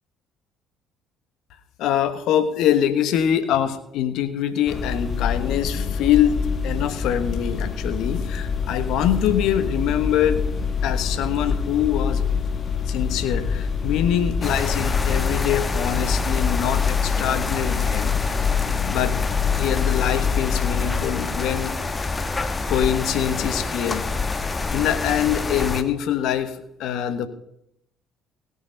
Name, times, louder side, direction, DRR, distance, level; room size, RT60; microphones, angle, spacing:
voice 1, 1.8-10.4 10.8-12.2 12.9-18.2 18.8-19.2 19.6-21.7 22.7-24.1 24.7-27.3, left 10 dB, 65° left, 11 dB, 1.3 m, -24 dB
sound 1, 4.7-21.0, left 6 dB, 40° left, 1.6 m, -25 dB
sound 2, 14.4-25.8, left 3 dB, 25° left, 1.3 m, -27 dB
17.0 x 8.3 x 5.4 m, 0.78 s
hypercardioid pair, 55°, 0 cm